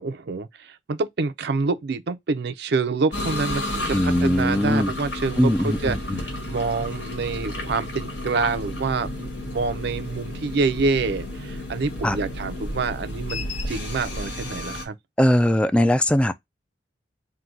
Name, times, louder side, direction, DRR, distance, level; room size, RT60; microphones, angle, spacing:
voice 1, 0.0-15.0, right 4 dB, 65° right, 0.5 m, -27 dB
sound 1, 3.1-14.9, left 1 dB, 80° left, 1.7 m, -32 dB
voice 2, 3.9-4.9 5.4-6.2 12.0-12.2 15.2-16.3, left 1 dB, 5° left, 0.3 m, -20 dB
3.8 x 2.2 x 4.4 m
head